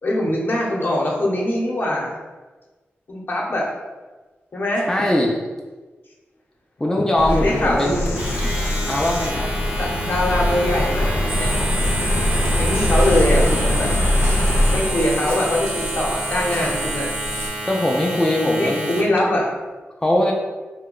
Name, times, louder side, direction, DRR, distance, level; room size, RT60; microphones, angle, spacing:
voice 1, 0.0-2.2 3.1-3.8 4.5-4.9 7.3-8.5 9.7-11.7 12.6-13.9 14.7-17.1 18.5-19.5, left 1 dB, 55° left, -2 dB, 0.7 m, -22 dB
voice 2, 4.8-5.3 6.8-8.0 8.9-9.5 17.6-18.9 20.0-20.3, left 1 dB, 15° left, -2 dB, 0.4 m, -20 dB
Bird vocalization bird call bird song, 7.2-14.8, left 1 dB, 80° left, 0.5 m, -22 dB
Domestic sounds home sounds, 8.1-19.2, right 1 dB, 25° right, 0.7 m, -31 dB
sound 1, 11.3-17.5, right 1 dB, 65° right, 0.6 m, -28 dB
2.8 x 2.2 x 3.7 m, 1.3 s
cardioid pair, 65°, 4 cm